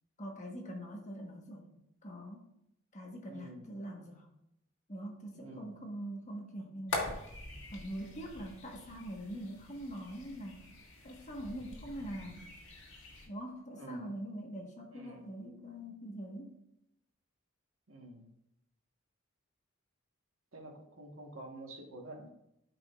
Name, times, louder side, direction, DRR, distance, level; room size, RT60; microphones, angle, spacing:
voice 1, 0.2-1.7 2.0-2.4 2.9-4.3 4.9-7.1 7.7-10.6 11.0-12.5 13.3-16.6, equal, 35° left, 1 dB, 1.4 m, -43 dB
voice 2, 3.3-3.7 5.3-5.7 13.7-14.1 14.9-15.3 17.9-18.3 20.5-22.3, right 1 dB, 75° right, 1 dB, 1.5 m, -49 dB
sound 1, 6.9-13.3, left 2 dB, 60° left, 1.9 m, -44 dB
13.0 x 5.1 x 2.5 m, 0.80 s
head